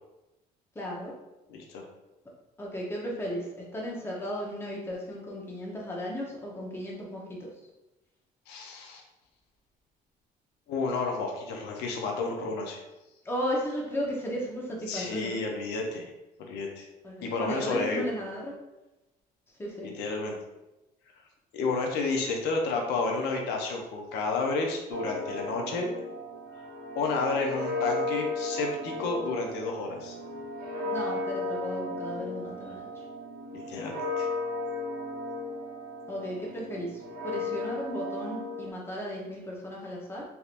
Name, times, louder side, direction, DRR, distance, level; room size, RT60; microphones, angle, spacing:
voice 1, 0.7-1.1 2.6-3.5 3.7-7.5 13.2-15.4 17.0-18.6 19.6-19.9 30.8-33.0 36.1-40.2, equal, 15° left, -3 dB, 0.8 m, -35 dB
voice 2, 1.5-1.8 8.5-9.0 10.7-12.8 14.9-16.1 16.4-16.9 17.2-18.0 19.8-20.4 21.5-25.9 27.0-30.2 33.5-34.3, left 3 dB, 85° left, 1 dB, 0.6 m, -31 dB
sound 1, 24.9-38.7, left 2 dB, 60° right, 1.3 m, -35 dB
3.4 x 2.7 x 2.5 m, 0.99 s
cardioid pair, 110°, 17 cm